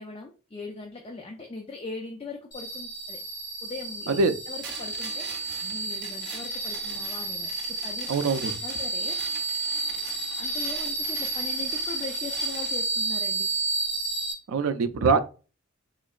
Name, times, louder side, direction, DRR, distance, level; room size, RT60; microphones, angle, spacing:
voice 1, 0.0-3.2 3.6-4.2 4.5-7.5 7.8-8.1 8.6-9.2 10.4-13.5, left 3 dB, 25° left, 0.4 m, -40 dB
sound 1, 2.5-14.3, right 2 dB, 50° left, 1.3 m, -31 dB
sound 2, 4.6-12.9, right 5 dB, 55° right, 0.8 m, -43 dB
voice 2, 8.1-8.6 14.5-15.2, right 4 dB, 75° right, 0.4 m, -23 dB
3.7 x 3.1 x 2.4 m
head